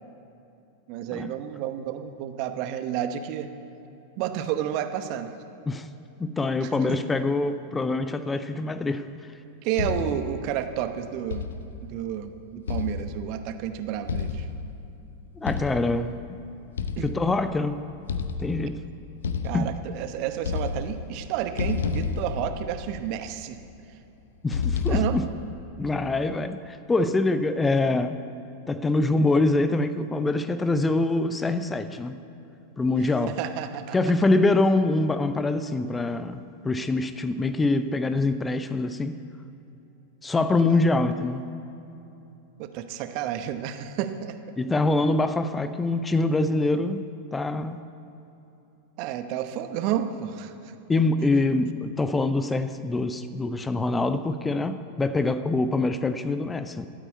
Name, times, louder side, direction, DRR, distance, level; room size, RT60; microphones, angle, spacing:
voice 1, 0.9-3.5 4.2-5.4 6.6-7.0 9.6-11.5 11.8-14.5 17.0-17.1 19.4-23.6 24.9-25.2 33.3-34.0 40.7-40.8 42.6-44.4 49.0-50.5, right 10 dB, 45° right, 9 dB, 0.9 m, -31 dB
voice 2, 6.2-9.3 15.4-16.4 17.0-17.9 18.4-18.8 19.5-19.7 24.4-25.2 25.8-28.2 28.7-32.2 32.8-33.3 33.9-39.1 40.2-41.4 44.6-47.8 50.9-56.9, left 2 dB, 15° left, 12 dB, 0.5 m, -24 dB
sound 1, 9.8-10.4 11.3-11.9 12.7-13.5 14.1-14.9 15.5-16.1 16.8-17.5 18.1-18.8 19.2-20.1 20.4-21.2 21.6-23.1 24.5-25.5, left 5 dB, 65° left, 0.7 m, -30 dB
13.5 x 8.8 x 8.3 m, 2.9 s
figure-of-eight pair, 90°, 0 cm